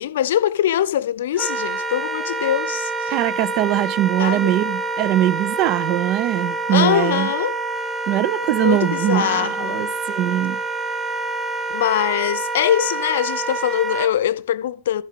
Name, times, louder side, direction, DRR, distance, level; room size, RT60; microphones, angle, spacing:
voice 1, 0.0-3.2 3.7-3.8 4.2-4.6 6.7-7.6 8.6-9.9 11.7-15.0, left 11 dB, 60° left, 0.7 m, -22 dB
Wind instrument woodwind instrument, 1.3-14.1, right 3 dB, 10° right, 1.9 m, -27 dB
voice 2, 3.1-7.3 8.1-10.6, right 13 dB, 40° right, 0.6 m, -21 dB
14.5 x 6.4 x 4.9 m
figure-of-eight pair, 90°, 0 cm